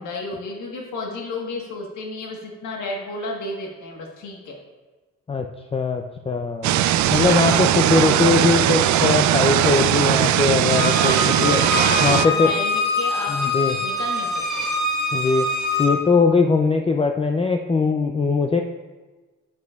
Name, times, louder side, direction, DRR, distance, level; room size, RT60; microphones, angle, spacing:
voice 1, 0.0-4.6 7.4-8.1 11.0-13.4 13.8-14.7, left 2 dB, 80° left, 0 dB, 1.4 m, -32 dB
voice 2, 5.7-6.7 7.1-11.6 12.0-12.5 13.3-13.8 15.1-15.5 15.8-18.6, left 4 dB, 20° left, 4 dB, 0.4 m, -20 dB
sound 1, 6.6-12.3, right 11 dB, 70° right, 0.5 m, -19 dB
Bowed string instrument, 10.6-15.9, left 3 dB, ahead, 2.5 m, -24 dB
9.5 x 8.3 x 2.4 m, 1.3 s
cardioid pair, 90°, 30 cm